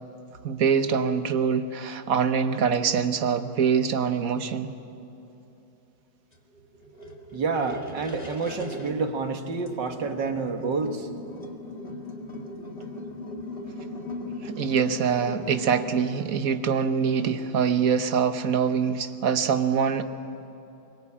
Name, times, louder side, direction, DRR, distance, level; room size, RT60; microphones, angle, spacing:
voice 1, 0.4-4.7 14.4-20.0, right 6 dB, 55° right, 9 dB, 1.4 m, -24 dB
sound 1, 6.3-15.9, left 2 dB, 30° left, 2.1 m, -39 dB
voice 2, 7.3-11.1, right 4 dB, 75° right, 5 dB, 2.3 m, -28 dB
24.5 x 22.5 x 8.7 m, 3.0 s
omnidirectional pair, 1.9 m